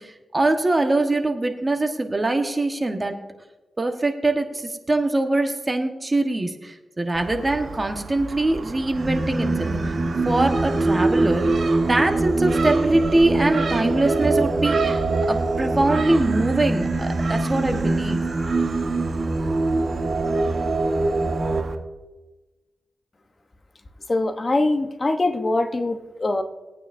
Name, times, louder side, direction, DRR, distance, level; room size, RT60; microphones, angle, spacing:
voice 1, 0.0-3.2 3.8-9.9 10.2-11.5 11.9-15.0 15.3-18.2, right 2 dB, 30° right, 4 dB, 1.4 m, -23 dB
Gull seagull, 7.1-21.7, right 4 dB, 65° right, 1.1 m, -35 dB
Singing, 8.9-21.6, right 2 dB, 50° right, 1.7 m, -23 dB
voice 2, 24.1-26.4, left 2 dB, 40° left, 7 dB, 1.0 m, -23 dB
21.0 x 9.0 x 2.7 m, 1.2 s
cardioid pair, 70°, 0 cm